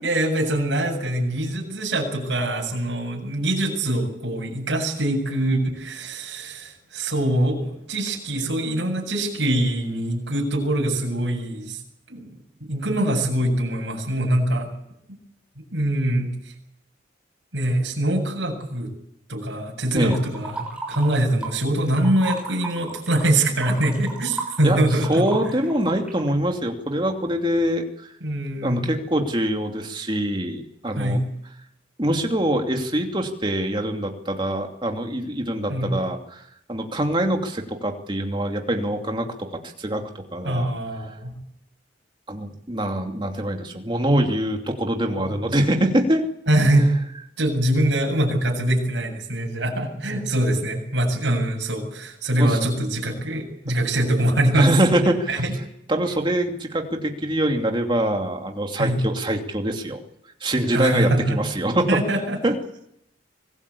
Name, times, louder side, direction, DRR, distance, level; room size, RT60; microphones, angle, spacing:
voice 1, 0.0-11.8 12.1-12.3 12.6-14.7 15.7-16.3 17.5-18.9 19.3-25.3 28.2-28.9 30.9-31.3 35.7-36.0 40.4-41.3 45.1-45.3 46.5-46.9 47.4-54.7 55.3-55.5 58.8-59.1 60.7-61.4 61.9-62.5, right 1 dB, 70° right, 0 dB, 7.7 m, -23 dB
sound 1, 20.1-21.6 21.9-26.3, right 3 dB, 5° right, 6.5 m, -34 dB
voice 2, 24.6-28.1 28.6-31.2 32.0-36.4 36.7-39.5 39.8-40.0 40.3-40.7 42.3-46.2 52.4-52.6 54.5-55.4 55.9-60.0 60.4-62.0 62.4-62.5, right 1 dB, 25° right, 3 dB, 2.7 m, -24 dB
25.0 x 18.0 x 8.6 m, 0.77 s
head